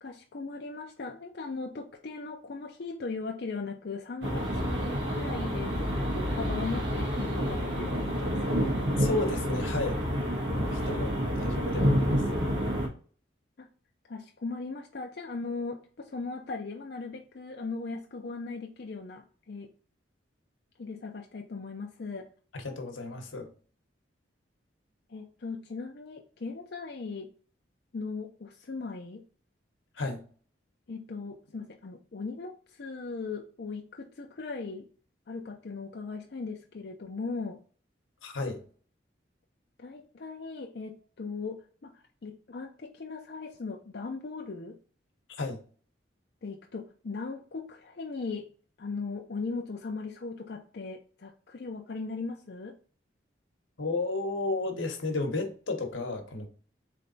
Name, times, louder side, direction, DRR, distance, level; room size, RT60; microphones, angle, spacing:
voice 1, 0.0-8.7 13.6-13.7 14.0-19.7 20.8-22.3 25.1-27.3 27.9-29.2 30.9-34.9 35.3-37.6 39.8-44.8 46.4-48.5 48.8-52.8, left 4 dB, 55° left, 0.5 m, -38 dB
sound 1, 4.2-12.9, equal, 75° right, 1.3 m, -29 dB
voice 2, 9.0-10.0 10.6-12.2 22.5-23.5 30.0-30.2 38.2-38.6 45.4-45.6 53.8-56.5, left 2 dB, 90° left, 1.1 m, -32 dB
3.9 x 3.3 x 3.9 m
head